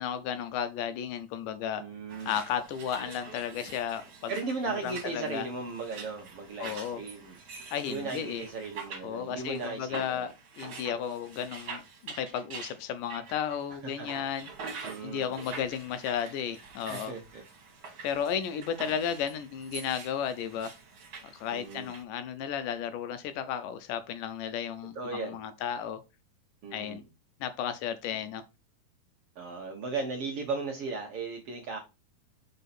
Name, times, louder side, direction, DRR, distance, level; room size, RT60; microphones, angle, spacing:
voice 1, 0.0-1.8 2.3-4.3 4.7-5.5 6.6-7.0 7.7-8.4 9.0-14.7 15.0-17.1 18.0-20.7 21.2-26.0 26.7-27.0 27.4-28.4, left 8 dB, 80° left, 11 dB, 2.1 m, -34 dB
voice 2, 1.8-2.3 4.3-7.4 7.9-10.2 13.8-14.1 14.8-15.3 16.9-17.4 21.5-21.9 24.9-25.4 26.6-27.0 29.3-31.8, right 4 dB, 65° right, 1 dB, 1.5 m, -36 dB
sound 1, 2.1-22.0, right 4 dB, 45° right, 2.0 m, -46 dB
6.8 x 4.6 x 4.2 m, 0.27 s
omnidirectional pair, 4.0 m